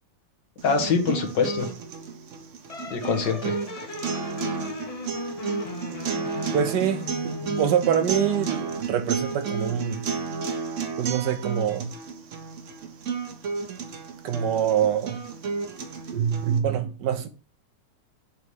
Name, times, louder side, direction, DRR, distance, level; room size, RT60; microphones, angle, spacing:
voice 1, 0.6-1.7 2.9-3.9, left 5 dB, 85° left, 1.9 m, -25 dB
sound 1, 0.6-16.6, right 5 dB, 55° right, 1.0 m, -32 dB
sound 2, 2.7-8.7, left 3 dB, 35° left, 0.5 m, -38 dB
voice 2, 6.5-10.0 11.0-11.9 14.2-15.2 16.1-17.3, right 8 dB, 75° right, 1.5 m, -25 dB
7.0 x 3.2 x 5.4 m
omnidirectional pair, 1.9 m